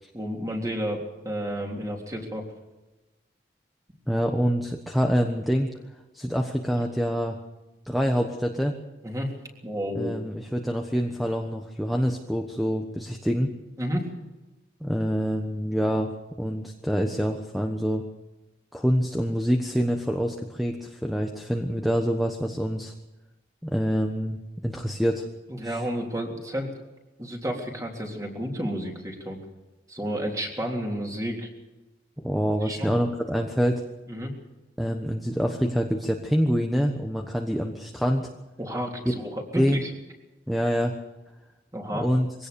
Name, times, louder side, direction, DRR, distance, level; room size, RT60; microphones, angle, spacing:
voice 1, 0.1-2.5 9.0-9.3 9.6-10.1 13.8-14.1 25.5-26.7 27.2-29.4 29.9-31.5 32.6-33.0 34.1-34.3 38.6-39.9 41.7-42.1, equal, 20° right, 0 dB, 3.5 m, -31 dB
voice 2, 4.1-5.7 6.1-7.4 7.8-8.7 9.9-13.5 14.8-16.1 16.4-18.0 18.7-22.9 23.6-25.2 25.6-25.8 32.2-33.8 34.8-38.3 39.0-39.1 39.5-39.8 40.5-40.9 41.9-42.3, equal, ahead, 3 dB, 1.2 m, -26 dB
22.5 x 17.5 x 7.0 m, 1.1 s
head